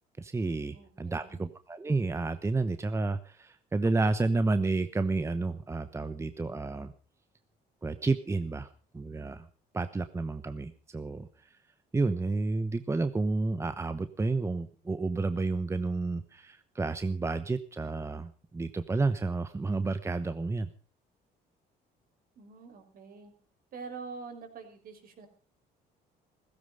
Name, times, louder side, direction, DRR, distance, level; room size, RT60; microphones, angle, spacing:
voice 1, 0.2-6.9 7.8-8.7 8.9-9.5 9.7-11.6 11.9-20.7, right 3 dB, 15° right, 11 dB, 1.0 m, -30 dB
voice 2, 0.7-1.5 22.3-23.3 23.7-25.3, right 5 dB, 60° right, 6 dB, 5.1 m, -45 dB
16.5 x 15.5 x 5.3 m, 0.37 s
cardioid pair, 110°, 17 cm